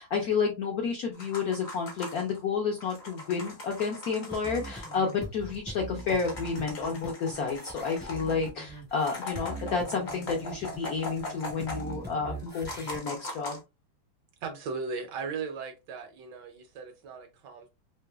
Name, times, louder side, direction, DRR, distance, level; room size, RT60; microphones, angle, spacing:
voice 1, 0.0-13.6, left 5 dB, 70° left, 0.9 m, -30 dB
sound 1, 1.1-2.4 2.8-5.1 5.5-5.6 5.8-8.5 9.0-12.1 12.4-13.6, left 2 dB, 45° left, 0.9 m, -41 dB
sound 2, 4.3-13.0, right 1 dB, 10° right, 0.5 m, -42 dB
voice 2, 14.4-17.7, right 4 dB, 70° right, 1.1 m, -37 dB
3.1 x 2.8 x 2.2 m
omnidirectional pair, 2.2 m